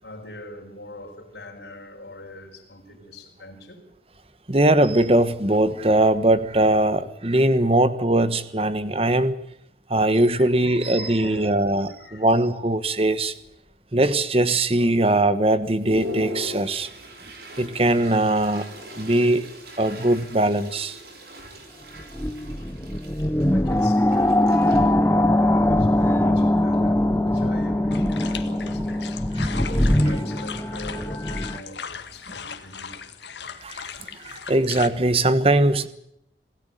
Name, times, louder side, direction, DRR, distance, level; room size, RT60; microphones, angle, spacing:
voice 1, 0.0-3.8 10.3-11.7 12.0-12.3 21.4-21.8 22.5-22.9 23.2-33.0, left 1 dB, 65° left, 5.3 m, -42 dB
voice 2, 4.5-9.3 9.9-13.4 13.9-16.9 17.6-18.6 18.9-19.5 19.8-21.0 29.4-29.5 33.6-35.9, right 1 dB, 30° right, 1.3 m, -21 dB
Toilet flush, 11.6-12.2 12.7-12.8 13.0-13.8 14.3-14.4 14.9-15.0 15.4-27.4, left 1 dB, 60° right, 5.4 m, -41 dB
sound 1, 22.0-31.6, left 1 dB, 15° left, 1.0 m, -21 dB
sound 2, 27.9-34.9, left 7 dB, 80° left, 1.9 m, -38 dB
27.0 x 16.5 x 9.3 m
head